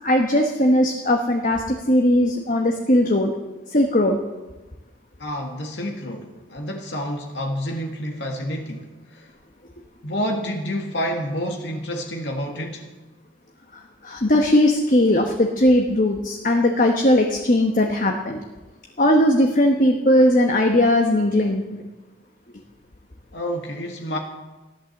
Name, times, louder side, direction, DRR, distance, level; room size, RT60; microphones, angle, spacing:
voice 1, 0.0-3.3 3.7-4.2 14.0-18.4 19.0-21.8, left 1 dB, 45° left, 2 dB, 1.2 m, -18 dB
voice 2, 5.2-9.3 10.0-12.9 23.3-24.2, equal, 75° left, 2 dB, 1.7 m, -29 dB
14.5 x 11.5 x 7.3 m, 1.1 s
head